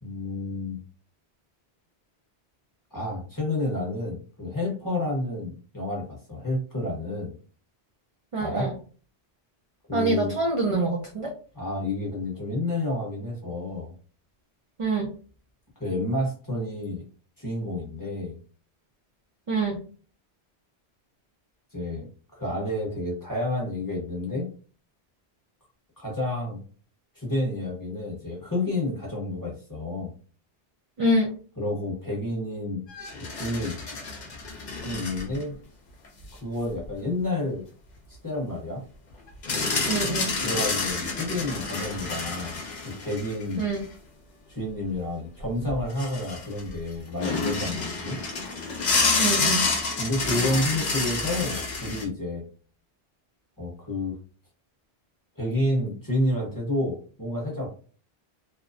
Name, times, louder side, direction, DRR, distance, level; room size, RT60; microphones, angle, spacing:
voice 1, 0.0-0.8 2.9-7.4 8.4-8.7 9.9-10.3 11.5-13.9 15.8-17.0 17.4-18.4 21.7-22.1 22.3-24.5 26.0-26.6 27.1-30.1 31.6-32.8 33.3-33.8 34.8-35.6 36.4-37.7 38.2-38.8 40.4-42.6 43.0-43.7 44.5-48.2 50.0-52.5 53.6-54.2 55.4-57.7, left 1 dB, 20° left, -3 dB, 0.9 m, -30 dB
voice 2, 8.3-8.7 9.9-11.3 14.8-15.1 19.5-19.8 31.0-31.3 39.9-40.3 43.6-43.8 49.2-49.6, right 2 dB, 55° right, 0 dB, 0.3 m, -25 dB
sound 1, 32.9-35.4 36.0-36.1 39.4-43.8 45.4-45.5 45.7-46.7 47.2-52.1, left 3 dB, 50° left, 0.6 m, -28 dB
2.8 x 2.0 x 2.5 m, 0.40 s
omnidirectional pair, 1.1 m